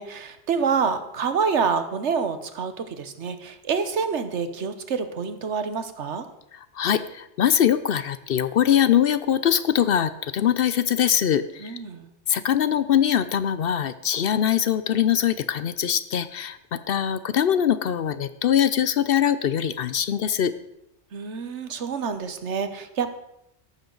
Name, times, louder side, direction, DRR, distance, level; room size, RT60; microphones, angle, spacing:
voice 1, 0.0-6.3 11.6-12.1 21.1-23.1, right 5 dB, 80° right, 10 dB, 1.3 m, -27 dB
voice 2, 6.8-11.8 12.3-20.5, left 9 dB, 60° left, 14 dB, 0.7 m, -22 dB
14.0 x 12.0 x 3.9 m, 0.84 s
omnidirectional pair, 1.2 m